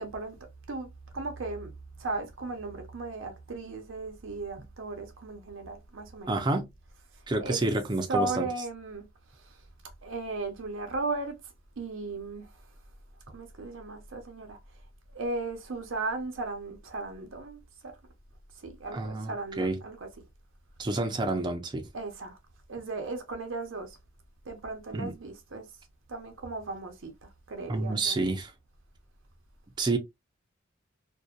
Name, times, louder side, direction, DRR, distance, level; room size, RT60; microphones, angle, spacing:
voice 1, 0.0-1.7 2.0-6.4 7.4-7.6 8.1-9.0 9.3-9.6 10.0-12.5 13.3-14.6 15.1-18.0 18.6-20.1 21.9-22.4 22.7-24.0 24.5-25.7 26.1-28.2, right 3 dB, 85° right, 0.7 m, -36 dB
voice 2, 6.3-6.7 7.3-8.5 18.9-19.8 20.8-21.8 24.9-25.1 27.7-28.5 29.8-30.0, right 2 dB, 25° right, 0.4 m, -29 dB
2.6 x 2.1 x 2.3 m
head